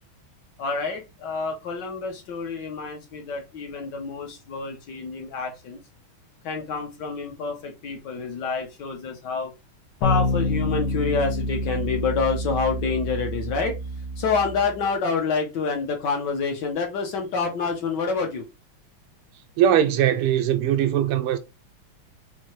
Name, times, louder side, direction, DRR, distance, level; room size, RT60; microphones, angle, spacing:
voice 1, 0.6-5.8 6.4-9.5 10.0-13.8 14.2-18.4, left 4 dB, 65° left, 1.2 m, -27 dB
sound 1, 10.0-14.8, left 1 dB, 90° left, 1.8 m, -27 dB
voice 2, 19.6-21.4, right 10 dB, 90° right, 1.5 m, -20 dB
4.4 x 2.7 x 3.0 m
omnidirectional pair, 2.4 m